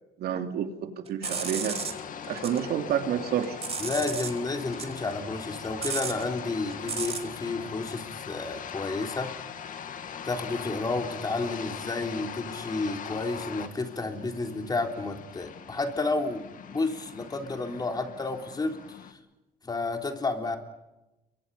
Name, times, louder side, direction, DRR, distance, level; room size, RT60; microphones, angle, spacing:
voice 1, 0.2-1.8 2.3-3.6, right 9 dB, 70° right, 6 dB, 2.7 m, -29 dB
sound 1, 1.1-2.6 3.0-4.4 4.7-7.3, right 6 dB, 35° right, 2.7 m, -34 dB
sound 2, 1.2-19.1, left 8 dB, 50° left, 2.3 m, -40 dB
voice 2, 3.8-9.3 10.2-16.4 16.7-19.0 19.6-20.6, left 3 dB, 25° left, 4 dB, 3.7 m, -31 dB
29.5 x 23.5 x 5.6 m, 0.99 s
cardioid pair, 110°, 17 cm